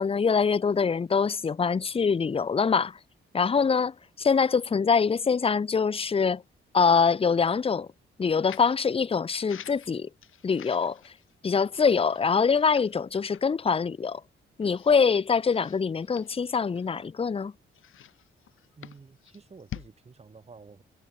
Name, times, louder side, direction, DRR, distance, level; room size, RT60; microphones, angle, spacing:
voice 1, 0.0-3.0 3.3-6.4 6.7-7.9 8.2-10.1 10.4-11.0 11.4-14.2 14.6-17.5, left 5 dB, 25° left, 0.9 m, -24 dB
sound 1, 8.5-8.8 9.3-11.3 11.7-13.0 13.3-13.5 14.0-14.1 14.6-15.0 15.4-17.1 17.7-19.9, left 10 dB, 75° left, 4.8 m, -47 dB
voice 2, 18.8-20.8, right 4 dB, 30° right, 7.5 m, -50 dB
cardioid pair, 130°, 21 cm